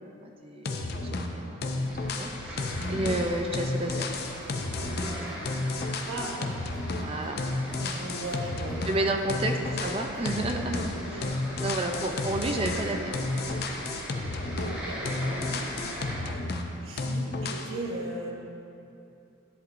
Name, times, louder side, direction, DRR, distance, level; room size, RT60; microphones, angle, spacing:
voice 1, 0.0-4.1 6.4-6.5 7.0-7.4 8.9-11.3 11.6-13.2 16.2-16.3, right 1 dB, 25° right, 3 dB, 0.4 m, -32 dB
sound 1, 0.7-1.3 1.6-7.1 7.4-9.0 9.3-11.0 11.2-14.8 15.1-16.7 17.0-17.7, left 2 dB, 50° left, 0.5 m, -32 dB
sound 2, 1.8-16.2, equal, 5° right, 1.3 m, -41 dB
sound 3, 2.6-11.0, right 1 dB, 55° right, 1.1 m, -51 dB
voice 2, 2.8-3.1 6.1-6.4 7.8-9.0 9.3-9.4 10.9-11.3 11.6-11.9 14.3-15.7 16.8-18.3, right 1 dB, 75° right, -1 dB, 1.1 m, -38 dB
10.5 x 7.8 x 2.6 m, 2.7 s
head